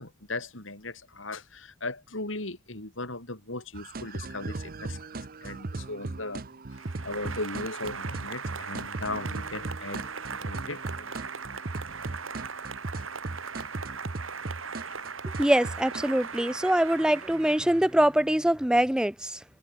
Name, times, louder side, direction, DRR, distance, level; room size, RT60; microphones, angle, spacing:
voice 1, 0.0-5.0 5.4-6.4 7.0-11.1 15.4-15.5, left 2 dB, 70° left, 5.8 m, -37 dB
sound 1, 3.7-16.0, right 2 dB, 45° right, 0.8 m, -38 dB
Applause, 6.7-18.2, right 5 dB, 85° right, 6.0 m, -39 dB
voice 2, 15.4-19.4, right 1 dB, 5° right, 0.4 m, -24 dB
head